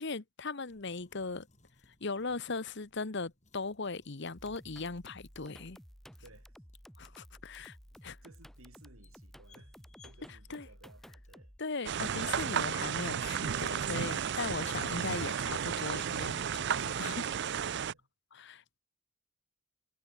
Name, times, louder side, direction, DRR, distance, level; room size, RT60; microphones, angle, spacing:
voice 1, 0.0-1.5 2.0-5.8 7.0-7.8 8.0-8.2 10.5-10.7 11.6-17.3 18.4-18.8, left 3 dB, 55° left, 1.1 m, -38 dB
sound 1, 0.6-18.0, left 3 dB, 35° left, 6.0 m, -67 dB
sound 2, 4.4-11.6, equal, ahead, 2.2 m, -54 dB
voice 2, 6.2-6.6 7.6-7.8 8.2-11.5 17.5-18.1, right 2 dB, 85° right, 4.1 m, -59 dB
sound 3, 11.9-17.9, right 8 dB, 55° right, 0.5 m, -33 dB
head